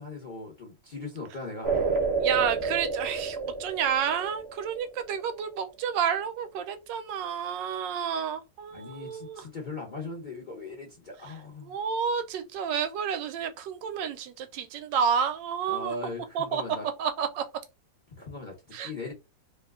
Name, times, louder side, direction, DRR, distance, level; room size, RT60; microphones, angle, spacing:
voice 1, 0.0-2.1 8.7-11.8 15.7-16.9 18.2-19.1, left 3 dB, 40° left, 0.7 m, -39 dB
sound 1, 1.6-5.2, right 4 dB, 55° right, 0.7 m, -29 dB
voice 2, 2.2-9.4 11.6-15.9 16.3-16.6 17.0-17.4 18.7-18.9, right 7 dB, 80° right, 1.3 m, -30 dB
3.0 x 2.2 x 3.5 m
omnidirectional pair, 2.0 m